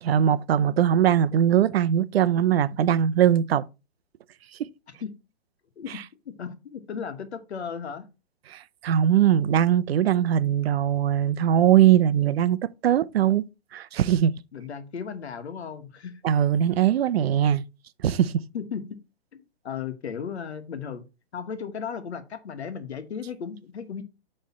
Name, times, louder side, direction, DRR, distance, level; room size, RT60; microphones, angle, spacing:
voice 1, 0.0-3.6 8.5-12.6 12.8-13.4 13.7-14.3 16.2-17.6 18.0-18.3, right 10 dB, 70° right, 0.6 m, -21 dB
voice 2, 5.8-8.1 14.5-16.2 18.5-19.0 19.3-21.0 21.3-24.0, left 7 dB, 85° left, 1.3 m, -35 dB
8.3 x 3.3 x 4.2 m
hypercardioid pair, 150°, 32 cm